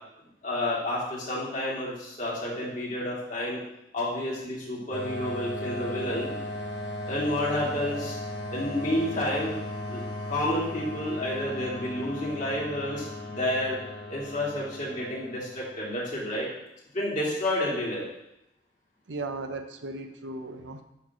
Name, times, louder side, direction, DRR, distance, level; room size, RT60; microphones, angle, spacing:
voice 1, 0.4-3.6 3.9-6.3 7.0-8.2 8.5-9.5 9.9-10.0 10.3-13.8 14.1-16.5 16.9-18.0, left 1 dB, 45° left, -6 dB, 2.6 m, -30 dB
sound 1, 4.9-16.3, left 1 dB, 70° left, 1.0 m, -37 dB
voice 2, 19.1-20.8, right 2 dB, 75° right, 7 dB, 0.7 m, -36 dB
8.5 x 3.3 x 6.0 m, 0.84 s
head